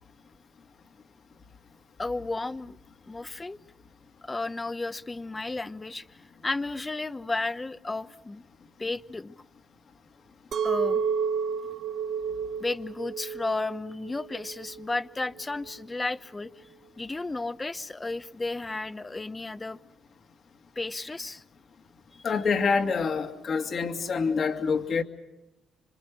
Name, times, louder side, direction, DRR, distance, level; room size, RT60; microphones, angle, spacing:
voice 1, 2.0-2.8 3.1-3.6 4.2-6.1 6.4-8.4 8.8-9.3 10.6-11.0 12.6-16.5 17.0-19.8 20.8-21.4 22.1-22.2, left 2 dB, 20° left, 13 dB, 0.9 m, -33 dB
Chink clink, 10.5-15.7, right 6 dB, 55° right, 1.3 m, -31 dB
voice 2, 22.2-25.0, left 5 dB, 50° left, 6 dB, 2.2 m, -26 dB
27.0 x 25.5 x 6.4 m, 0.93 s
cardioid pair, 90°, 0 cm